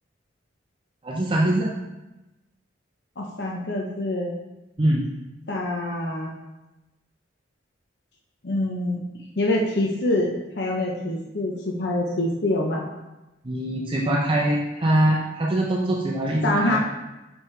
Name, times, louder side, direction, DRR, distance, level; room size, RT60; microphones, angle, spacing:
voice 1, 1.0-1.7 4.8-5.1 13.4-16.8, right 1 dB, 25° right, -3 dB, 0.6 m, -23 dB
voice 2, 3.2-4.3 5.5-6.3 8.4-9.0 9.4-12.9 16.4-16.8, left 1 dB, 60° left, -2 dB, 0.7 m, -25 dB
6.1 x 4.8 x 3.2 m, 1.0 s
head